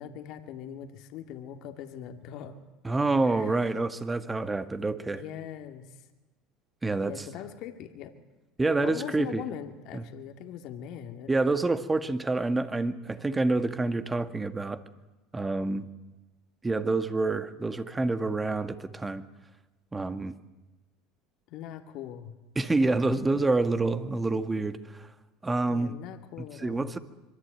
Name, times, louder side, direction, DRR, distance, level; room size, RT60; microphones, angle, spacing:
voice 1, 0.0-2.5 3.3-3.6 5.1-6.0 7.0-8.1 8.8-11.3 21.5-22.3 23.2-23.4 25.7-26.9, left 10 dB, 65° left, 6 dB, 2.4 m, -41 dB
voice 2, 2.8-5.2 6.8-7.1 8.6-9.4 9.9-10.0 11.3-14.8 15.3-15.8 16.6-19.2 19.9-20.3 22.6-25.1 25.4-25.9 26.6-27.0, right 3 dB, 15° right, 10 dB, 1.9 m, -27 dB
25.5 x 22.5 x 9.2 m, 1.1 s
supercardioid pair, 95°, 0 cm